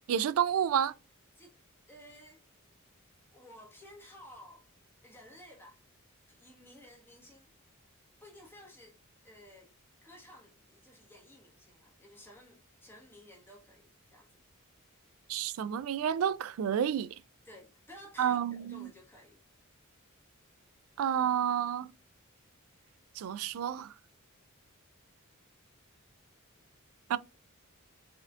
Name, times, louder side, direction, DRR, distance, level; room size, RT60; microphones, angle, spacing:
voice 1, 0.1-0.9 15.3-17.1 18.2-18.9 21.0-21.9 23.2-23.9 27.1-27.2, right 9 dB, 70° right, 0.3 m, -30 dB
voice 2, 1.9-2.4 3.3-4.7 5.0-5.8 6.3-7.5 8.2-9.7 10.0-14.4 17.4-19.4, equal, 10° left, 1.3 m, -54 dB
4.3 x 3.7 x 2.4 m
head